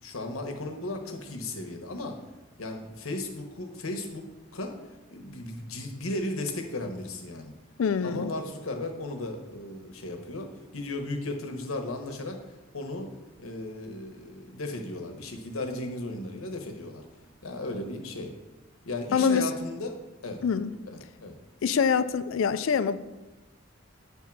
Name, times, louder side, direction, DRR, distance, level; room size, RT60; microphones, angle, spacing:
voice 1, 0.0-2.2 2.6-4.8 5.1-7.5 8.0-12.4 12.7-13.1 13.4-17.0 17.4-18.3 18.8-19.9 20.2-20.4 20.9-21.4, left 2 dB, 85° left, 1.0 m, -35 dB
voice 2, 7.8-8.3 19.1-19.5 20.4-20.7 21.6-23.0, left 6 dB, 70° left, 0.4 m, -25 dB
8.1 x 3.6 x 6.0 m
head